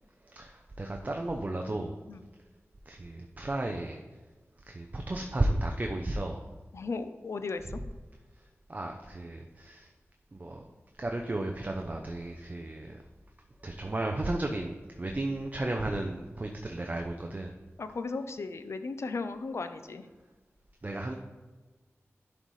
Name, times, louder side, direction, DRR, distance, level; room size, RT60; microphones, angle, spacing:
voice 1, 0.3-2.0 2.9-4.0 4.7-6.5 8.7-9.9 10.3-10.6 11.0-13.0 13.6-17.5 20.8-21.1, right 2 dB, 35° right, 2 dB, 0.5 m, -33 dB
voice 2, 6.7-7.8 17.8-20.1, left 4 dB, 70° left, 10 dB, 0.5 m, -36 dB
11.0 x 4.1 x 3.2 m, 1.3 s
wide cardioid pair, 90°, 5 cm